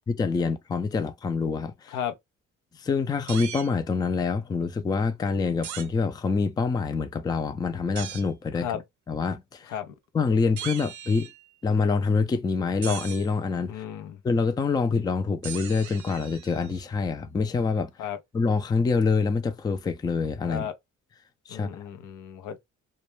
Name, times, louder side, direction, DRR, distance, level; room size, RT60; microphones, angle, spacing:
voice 1, 0.2-2.0 2.8-8.7 9.1-9.7 10.1-11.3 11.6-13.8 14.2-17.9 18.3-20.7 21.5-21.7, left 4 dB, 15° left, 0.3 m, -26 dB
sound 1, 3.3-3.7 5.6-5.9 8.0-8.3 10.6-11.5 12.8-13.3 15.4-16.8, right 10 dB, 70° right, 0.5 m, -39 dB
voice 2, 13.7-14.2 18.0-18.2 20.4-20.7 21.5-22.6, left 9 dB, 85° left, 0.6 m, -34 dB
2.2 x 2.1 x 3.0 m
cardioid pair, 90°, 30 cm